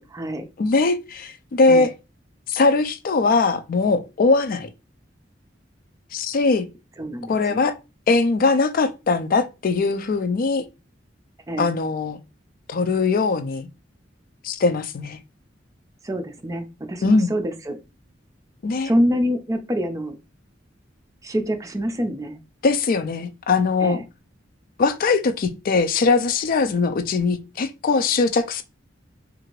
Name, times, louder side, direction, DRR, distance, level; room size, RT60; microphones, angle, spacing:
voice 1, 0.0-0.5 1.7-1.9 7.0-7.6 11.5-11.7 16.0-17.8 18.8-20.2 21.2-22.4 23.8-24.0, equal, 15° right, 0.4 m, -26 dB
voice 2, 0.6-1.9 2.5-4.7 6.1-6.7 7.3-7.7 8.1-10.6 11.6-12.2 12.7-13.7 14.4-15.2 17.0-17.3 18.6-18.9 22.6-24.0 24.8-28.6, left 4 dB, 50° left, 0.4 m, -21 dB
2.8 x 2.5 x 3.0 m
head